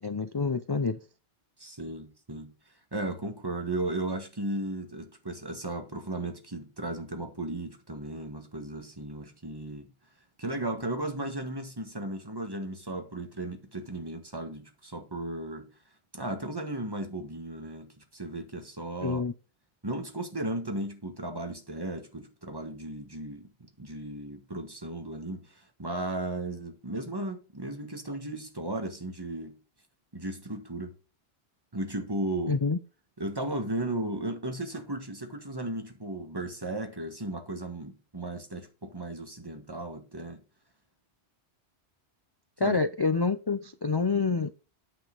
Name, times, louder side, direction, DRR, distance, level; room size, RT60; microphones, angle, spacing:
voice 1, 0.0-1.0 19.0-19.3 32.5-32.8 42.6-44.5, left 4 dB, 35° left, 0.4 m, -27 dB
voice 2, 1.6-2.5 2.9-9.9 10.4-15.7 16.1-19.2 19.8-29.6 30.1-30.9 31.7-32.6 33.2-40.4 42.6-42.8, right 1 dB, 20° right, 1.5 m, -35 dB
9.0 x 5.6 x 3.9 m
omnidirectional pair, 1.1 m